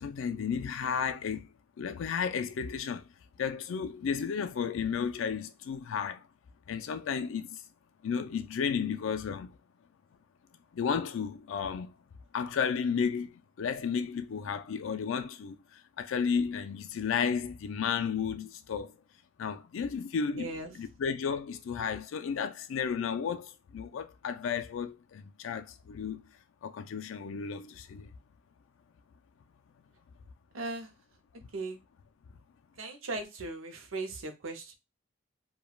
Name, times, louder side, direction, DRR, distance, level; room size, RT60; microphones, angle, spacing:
voice 1, 0.0-1.5 1.8-3.0 3.4-6.3 6.7-7.6 8.0-9.5 10.7-11.9 12.3-19.0 19.4-26.2 26.6-28.1, left 6 dB, 80° left, 0.4 m, -33 dB
voice 2, 20.4-20.7 30.5-30.9 31.5-31.8 32.8-34.8, right 2 dB, 85° right, 0.7 m, -38 dB
3.2 x 2.2 x 2.3 m
head